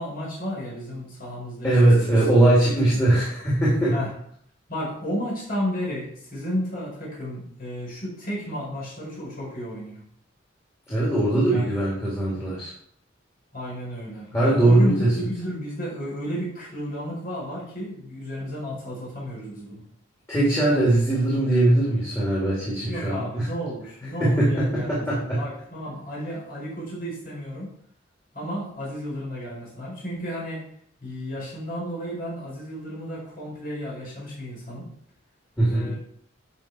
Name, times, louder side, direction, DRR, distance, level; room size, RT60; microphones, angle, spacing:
voice 1, 0.0-2.3 2.9-3.0 3.9-4.1 4.7-10.0 11.5-11.7 13.5-19.8 22.9-27.7 28.3-30.6 31.0-34.9 35.7-36.0, equal, 45° left, -5 dB, 4.7 m, -33 dB
voice 2, 1.6-4.0 10.9-12.7 14.3-15.1 20.3-23.5 24.2-25.4 35.6-35.9, right 1 dB, 15° left, -8 dB, 3.5 m, -20 dB
11.0 x 5.9 x 4.7 m, 0.65 s
head